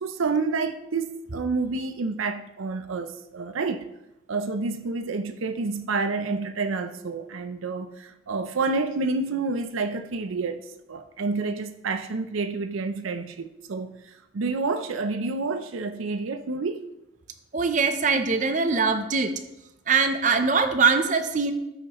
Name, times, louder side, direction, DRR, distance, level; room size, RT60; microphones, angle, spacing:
voice 1, 0.0-3.9 4.3-16.8, right 3 dB, 85° right, 0.6 m, -29 dB
voice 2, 17.5-19.3 19.9-21.5, right 4 dB, 40° right, 0.6 m, -22 dB
13.5 x 6.3 x 3.0 m
head